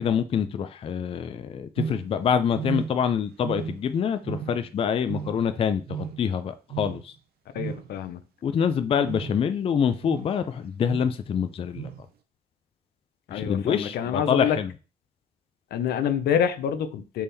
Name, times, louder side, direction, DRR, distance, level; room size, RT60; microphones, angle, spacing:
voice 1, 0.0-7.1 8.4-11.9 13.3-14.7, left 7 dB, 35° left, 0.4 m, -26 dB
sound 1, 1.8-2.2 2.5-3.1 3.4-3.9 4.2-4.7 5.0-5.5 5.9-6.3 6.7-7.0 7.5-7.9 8.9-9.5 10.0-10.4 10.8-11.2 11.7-12.0, right 7 dB, 70° right, 0.6 m, -35 dB
voice 2, 7.5-8.2 13.3-14.6 15.7-17.2, left 8 dB, 85° left, 0.6 m, -26 dB
4.1 x 3.5 x 3.3 m
cardioid pair, 145°, 16 cm